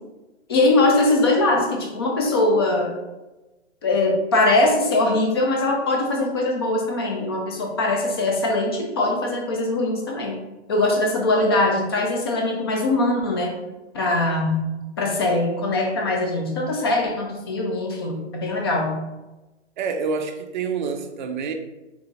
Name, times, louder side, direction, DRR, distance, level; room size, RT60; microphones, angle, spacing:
voice 1, 0.5-3.0 3.8-10.4 10.7-13.6 13.9-19.0, left 2 dB, 25° left, 1 dB, 0.4 m, -21 dB
voice 2, 19.8-21.5, right 5 dB, 45° right, 6 dB, 0.4 m, -27 dB
3.5 x 2.4 x 3.1 m, 1.1 s
hypercardioid pair, 145°, 35 cm